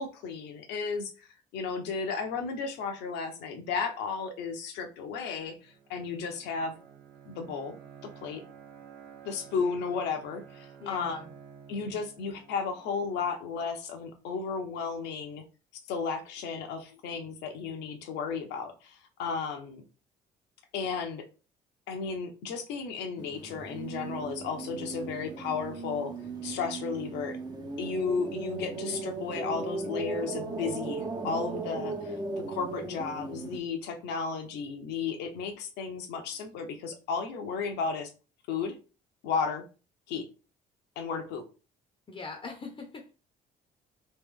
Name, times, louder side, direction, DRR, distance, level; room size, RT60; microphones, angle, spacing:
voice 1, 0.0-6.7 7.3-7.8 8.2-8.4 9.2-11.2 11.7-15.4 15.9-19.8 20.7-21.2 21.9-26.1 26.4-27.4 27.8-38.1 38.5-38.8 39.2-39.6 40.1-40.3 41.0-41.4, left 5 dB, 85° left, 6 dB, 0.9 m, -34 dB
Bowed string instrument, 5.6-13.4, right 7 dB, 75° right, 1.1 m, -52 dB
voice 2, 10.8-11.3 42.1-43.1, left 4 dB, 30° left, 3 dB, 0.7 m, -42 dB
sound 1, 23.2-33.6, right 3 dB, 25° right, 0.7 m, -37 dB
3.2 x 3.0 x 3.6 m, 0.33 s
cardioid pair, 110°, 17 cm